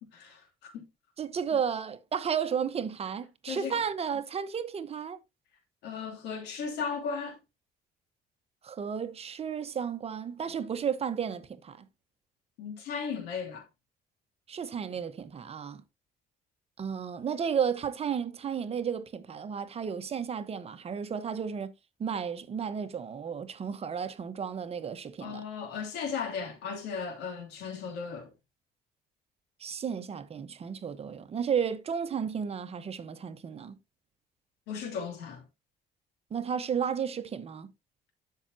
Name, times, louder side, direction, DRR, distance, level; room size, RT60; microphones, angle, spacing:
voice 1, 0.1-0.8 3.5-3.8 5.8-7.4 12.6-13.7 25.2-28.3 34.7-35.4, left 6 dB, 90° left, 3.0 m, -36 dB
voice 2, 1.2-5.2 8.6-11.9 14.5-15.8 16.8-21.7 22.0-25.4 29.6-33.8 36.3-37.7, right 7 dB, 35° right, 1.0 m, -33 dB
12.5 x 5.7 x 2.8 m
cardioid pair, 110°, 17 cm